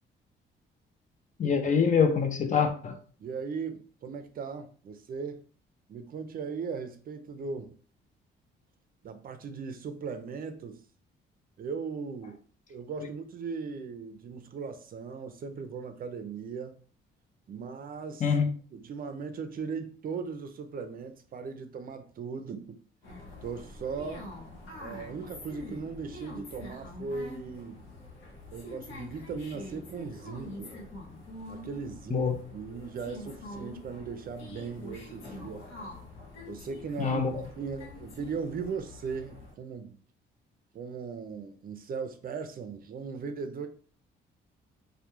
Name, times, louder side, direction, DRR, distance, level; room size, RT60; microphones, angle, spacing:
voice 1, 1.4-3.0 18.2-18.5 32.1-32.3 37.0-37.3, left 6 dB, 40° left, 0.5 m, -25 dB
voice 2, 3.2-5.4 5.9-7.7 9.0-10.8 11.6-12.4 12.7-16.8 17.5-18.3 18.7-22.8 23.4-24.3 24.8-27.8 28.5-30.7 31.5-35.7 36.5-40.0 40.7-43.7, right 5 dB, 45° right, 0.4 m, -38 dB
sound 1, 23.0-39.5, left 2 dB, 75° left, 0.8 m, -45 dB
2.2 x 2.1 x 2.9 m
cardioid pair, 90°, 20 cm